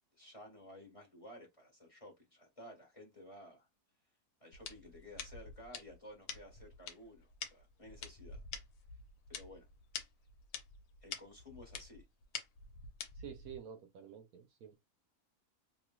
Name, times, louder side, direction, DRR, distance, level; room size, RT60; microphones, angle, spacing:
voice 1, 0.2-3.7 4.4-8.4 9.3-9.7 11.0-12.1, left 1 dB, 25° left, 1.2 m, -54 dB
sound 1, 4.5-13.6, left 6 dB, 85° left, 1.2 m, -48 dB
voice 2, 13.2-14.8, right 8 dB, 75° right, 1.1 m, -50 dB
3.0 x 2.9 x 2.2 m
omnidirectional pair, 1.6 m